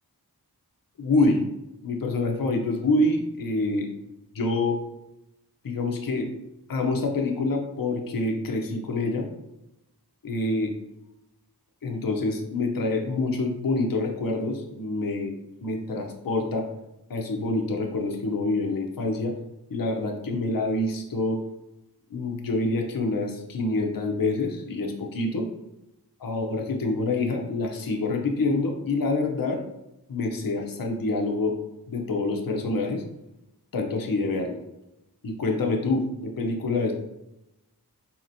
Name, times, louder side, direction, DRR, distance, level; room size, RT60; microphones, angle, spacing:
voice 1, 1.0-1.4 1.8-3.9 4.3-4.8 5.6-6.3 6.7-9.3 10.2-10.7 11.8-15.4 15.6-16.7 17.1-19.3 19.7-21.4 22.1-25.5 26.2-29.6 30.1-31.6 31.9-33.0 33.7-34.6 35.2-36.9, left 2 dB, 55° left, 2 dB, 0.6 m, -26 dB
4.1 x 2.9 x 2.6 m, 0.91 s
wide cardioid pair, 40°, 40 cm